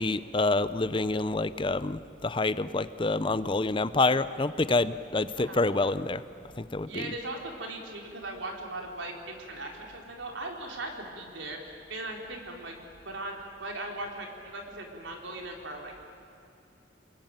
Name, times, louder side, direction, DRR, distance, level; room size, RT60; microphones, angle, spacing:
voice 1, 0.0-6.2 6.6-7.1, left 2 dB, 25° left, 14 dB, 0.6 m, -27 dB
voice 2, 5.2-5.6 6.9-12.8 13.0-16.1, right 2 dB, 90° right, 1 dB, 4.2 m, -39 dB
29.0 x 21.5 x 9.1 m, 2.7 s
head